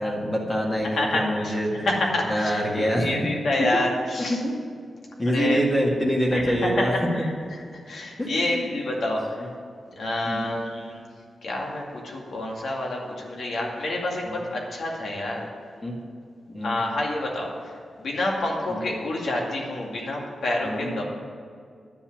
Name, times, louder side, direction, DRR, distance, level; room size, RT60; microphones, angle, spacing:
voice 1, 0.0-1.9 2.3-3.2 3.6-3.7 5.2-6.9 8.2-8.7 10.2-10.5 14.3-14.4 15.8-16.0 16.5-16.7 18.7-18.8 20.6-20.9, equal, 20° left, -2 dB, 1.7 m, -25 dB
voice 2, 0.8-1.6 1.8-4.4 5.3-5.6 6.3-9.5 10.0-11.0 11.4-15.5 16.6-21.0, left 1 dB, 65° left, -1 dB, 2.2 m, -28 dB
10.5 x 6.9 x 8.6 m, 2.2 s
wide cardioid pair, 135°, 0 cm